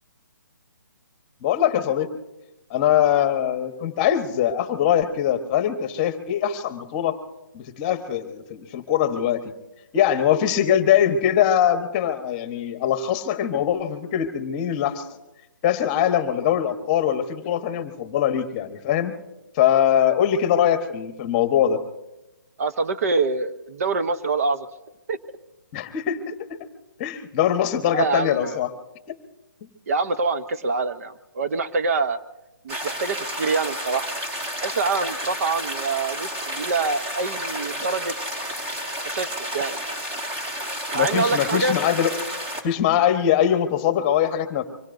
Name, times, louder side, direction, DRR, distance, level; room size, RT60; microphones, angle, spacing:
voice 1, 1.4-2.1 2.7-7.2 7.5-9.4 9.9-15.0 15.6-19.2 19.5-21.8 25.7-26.3 27.0-28.7 40.9-42.1 42.6-44.6, left 10 dB, 25° left, 9 dB, 1.1 m, -22 dB
voice 2, 22.6-24.7 25.1-25.2 27.9-28.6 29.9-32.2 32.6-34.1 34.6-38.1 39.0-39.8 40.9-41.8, right 4 dB, 50° right, 10 dB, 0.8 m, -25 dB
sound 1, 32.7-42.6, equal, 20° right, 2.1 m, -31 dB
25.0 x 22.0 x 2.6 m, 0.97 s
hypercardioid pair, 150°, 10 cm